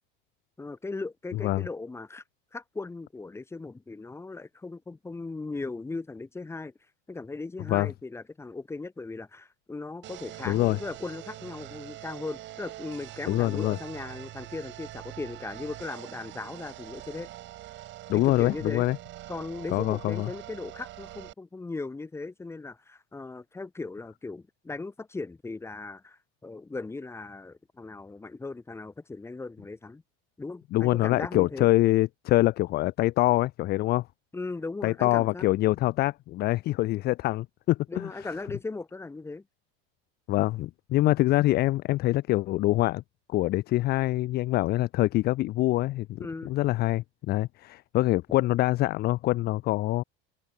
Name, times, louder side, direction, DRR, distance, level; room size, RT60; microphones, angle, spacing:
voice 1, 0.6-2.2 2.5-6.7 7.1-17.3 18.1-18.9 19.3-30.0 30.4-31.7 34.3-35.4 37.9-39.4 46.2-46.5, left 3 dB, 10° left, 2.8 m, -38 dB
sound 1, 10.0-21.3, right 15 dB, 40° right, 4.2 m, -44 dB
voice 2, 10.5-10.8 13.3-13.8 18.1-19.0 19.7-20.3 30.7-34.1 34.8-38.3 40.3-43.0 43.3-50.0, left 17 dB, 35° left, 0.6 m, -25 dB
cardioid pair, 160°, 29 cm